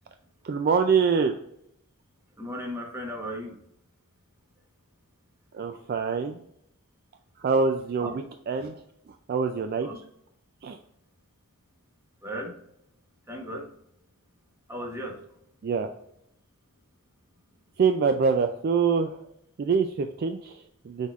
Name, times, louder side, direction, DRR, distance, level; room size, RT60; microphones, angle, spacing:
voice 1, 0.4-1.4 5.5-6.4 7.4-8.8 9.3-9.9 10.6-10.8 15.6-15.9 17.8-19.3 19.6-21.1, right 5 dB, 45° right, 6 dB, 0.3 m, -25 dB
voice 2, 2.4-3.5 9.8-9.9 12.2-12.5 13.3-13.6 14.7-15.1, equal, 10° right, -1 dB, 1.1 m, -35 dB
6.3 x 3.5 x 2.4 m, 0.74 s
head